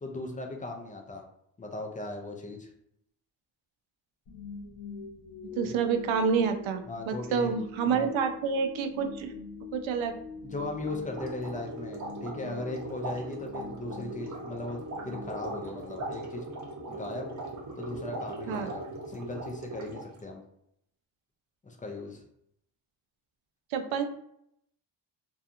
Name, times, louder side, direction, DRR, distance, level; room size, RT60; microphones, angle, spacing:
voice 1, 0.0-1.2 1.6-2.7 5.6-5.7 6.9-7.5 7.9-8.1 10.4-16.4 16.9-17.3 17.8-20.4 21.6-22.2, left 2 dB, 20° left, 2 dB, 0.3 m, -38 dB
sound 1, 4.3-16.4, left 4 dB, 80° left, 0.7 m, -44 dB
voice 2, 5.5-9.3 9.7-10.2 18.5-18.7 23.7-24.1, right 6 dB, 80° right, 7 dB, 0.5 m, -28 dB
sound 2, 10.8-20.2, right 2 dB, 40° right, 0.7 m, -39 dB
2.7 x 2.3 x 2.4 m, 0.74 s
cardioid pair, 115°, 47 cm